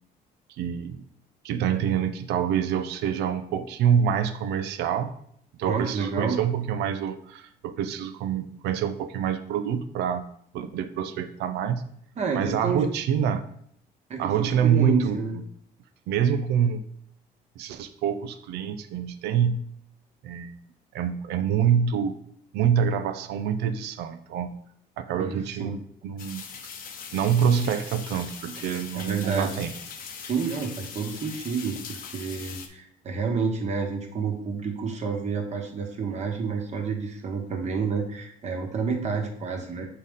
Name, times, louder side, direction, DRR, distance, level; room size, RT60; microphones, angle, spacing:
voice 1, 0.6-1.1 1.4-5.1 5.6-11.8 12.3-13.5 14.2-15.4 16.1-16.8 17.6-19.6 20.2-20.5 20.9-22.2 22.5-24.6 25.0-26.4 27.1-29.7, right 8 dB, 80° right, 10 dB, 0.6 m, -26 dB
voice 2, 5.6-6.4 12.2-12.9 14.1-15.4 25.2-25.7 28.5-28.7 28.9-29.6 30.2-39.9, right 5 dB, 40° right, 2 dB, 1.2 m, -29 dB
sound 1, 26.2-32.7, left 6 dB, 60° left, 0.8 m, -40 dB
6.6 x 4.1 x 3.6 m, 0.69 s
cardioid pair, 110°, 17 cm